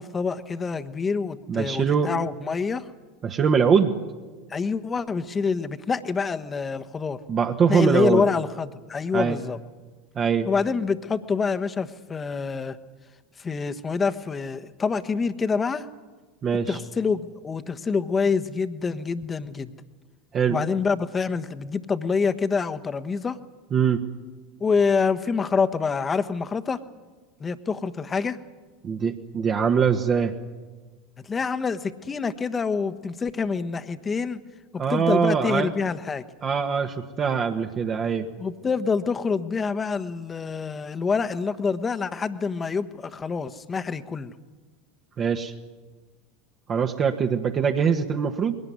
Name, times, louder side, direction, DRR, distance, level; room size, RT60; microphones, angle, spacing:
voice 1, 0.0-2.9 4.5-7.2 7.7-9.6 10.5-12.8 13.4-15.9 16.7-19.7 20.5-23.4 24.6-26.8 27.4-28.4 31.2-34.4 34.9-36.2 38.4-44.3, left 5 dB, 25° left, 10 dB, 1.2 m, -26 dB
voice 2, 1.5-2.1 3.2-4.0 7.3-8.2 9.1-9.4 10.1-10.5 16.4-16.8 20.3-20.6 23.7-24.0 28.8-30.4 34.8-35.7 36.4-38.3 45.2-45.5 46.7-48.6, right 6 dB, 35° right, 4 dB, 1.5 m, -22 dB
21.5 x 18.0 x 9.6 m, 1.3 s
hypercardioid pair, 85°, 0 cm